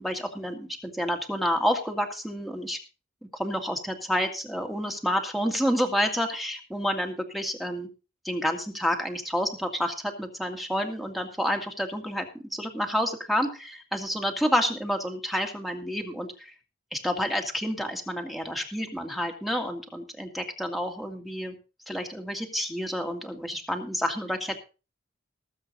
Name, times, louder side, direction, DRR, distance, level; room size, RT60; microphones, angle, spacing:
voice 1, 0.0-2.8 3.2-7.9 8.2-16.5 16.9-21.5 21.9-24.6, equal, ahead, 3 dB, 2.1 m, -29 dB
19.0 x 8.0 x 3.9 m, 0.32 s
head